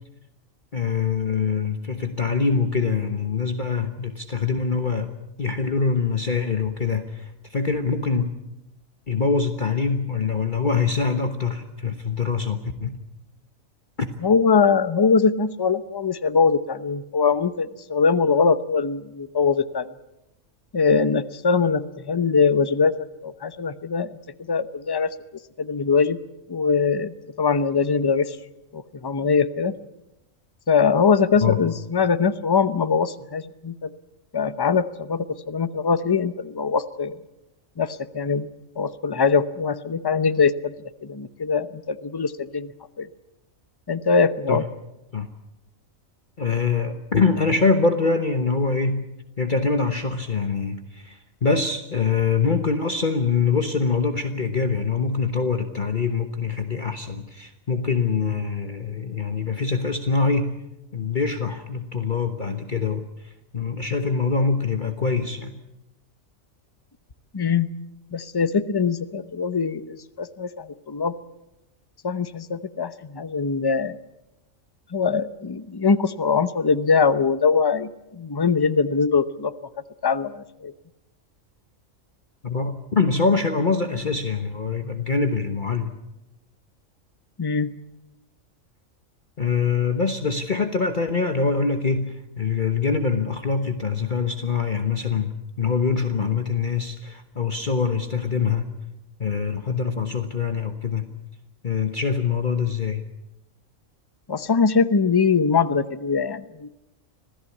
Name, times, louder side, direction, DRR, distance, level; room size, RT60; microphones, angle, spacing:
voice 1, 0.7-5.1 5.4-8.3 9.1-13.0 14.0-14.1 31.4-31.6 44.5-44.6 45.1-45.3 46.4-49.1 49.4-60.5 60.9-65.6 82.4-85.9 89.4-98.7 99.2-101.1 101.6-103.0, left 5 dB, 40° left, 6 dB, 1.3 m, -24 dB
voice 2, 14.2-19.9 20.7-22.9 23.2-24.2 24.5-25.1 25.6-26.2 26.5-28.4 28.7-29.7 30.7-33.9 34.3-37.2 37.8-38.5 38.8-40.7 41.0-42.7 43.0-43.1 43.9-44.6 67.3-67.7 68.1-71.1 72.0-74.0 74.9-79.5 80.0-80.7 87.4-87.7 104.3-106.7, left 5 dB, 25° left, 12 dB, 0.7 m, -22 dB
26.0 x 17.0 x 8.5 m, 0.92 s
omnidirectional pair, 1.4 m